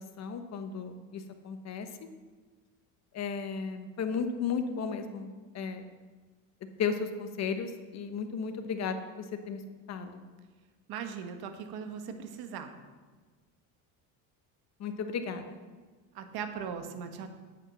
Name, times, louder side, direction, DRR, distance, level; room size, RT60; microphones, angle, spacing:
voice 1, 0.0-1.9 3.1-5.8 6.8-9.6 9.9-10.2 14.8-15.5, left 6 dB, 40° left, 7 dB, 1.2 m, -34 dB
voice 2, 10.9-12.8 16.1-17.3, right 7 dB, 60° right, 7 dB, 1.4 m, -39 dB
8.8 x 8.5 x 6.2 m, 1.4 s
cardioid pair, 130°, 41 cm